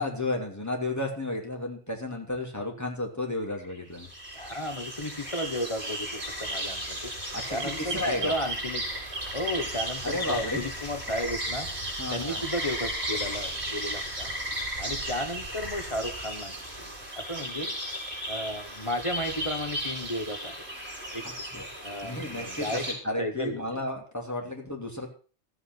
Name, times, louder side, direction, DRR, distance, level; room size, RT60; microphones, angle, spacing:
voice 1, 0.0-4.1 7.3-8.3 10.0-10.6 12.0-12.4 21.4-21.6 22.0-25.1, left 2 dB, 15° left, 0 dB, 2.8 m, -32 dB
sound 1, 3.4-22.9, right 1 dB, 70° right, 5.2 m, -35 dB
voice 2, 4.3-7.1 7.5-8.8 9.3-11.7 12.1-14.3 14.8-17.7 18.3-20.6 21.1-21.2 21.8-22.8 23.2-23.6, left 1 dB, 30° left, 7 dB, 1.1 m, -34 dB
14.0 x 8.2 x 6.0 m, 0.38 s
omnidirectional pair, 1.1 m